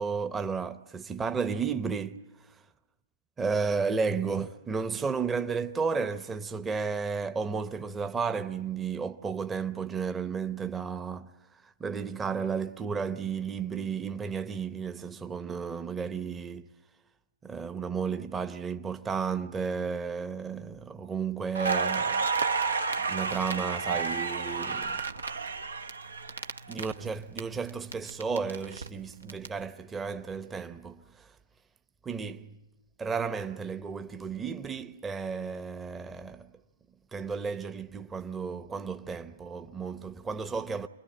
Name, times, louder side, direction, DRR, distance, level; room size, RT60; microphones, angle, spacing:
voice 1, 0.0-2.2 3.4-11.3 11.6-16.7 17.4-22.3 23.1-25.0 26.7-31.3 32.0-32.6 33.0-36.5 37.1-40.9, right 5 dB, 15° right, 0.8 m, -33 dB
Crackle, 21.5-27.4 27.7-29.5, right 4 dB, 80° right, 0.9 m, -31 dB
27.0 x 21.0 x 8.8 m
figure-of-eight pair, 110°, 0 cm